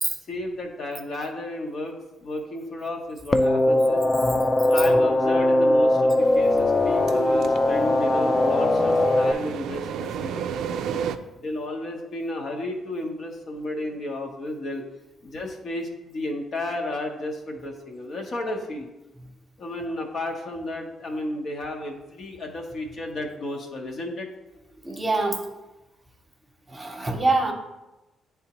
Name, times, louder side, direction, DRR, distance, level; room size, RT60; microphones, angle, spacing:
voice 1, 0.3-2.0 2.2-4.0 4.7-10.4 11.4-14.8 15.2-18.9 19.6-24.3, left 1 dB, 55° left, 2 dB, 1.0 m, -32 dB
sound 1, 3.3-9.3, left 1 dB, 25° left, 0.4 m, -20 dB
sound 2, 6.2-11.2, right 8 dB, 80° right, 0.3 m, -33 dB
voice 2, 24.8-25.5 26.7-27.5, right 2 dB, 20° right, 2 dB, 0.9 m, -25 dB
9.4 x 3.5 x 3.0 m, 1.0 s
cardioid pair, 90°, 0 cm